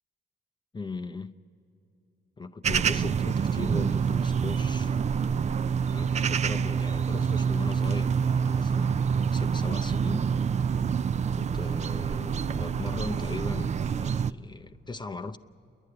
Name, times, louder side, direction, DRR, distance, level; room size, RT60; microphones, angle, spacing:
voice 1, 0.7-1.3 2.4-5.0 5.9-10.3 11.3-15.4, left 3 dB, 25° left, 0.6 m, -38 dB
sound 1, 2.6-14.3, right 6 dB, 35° right, 0.4 m, -27 dB
28.5 x 11.0 x 9.7 m
cardioid pair, 90°, 20 cm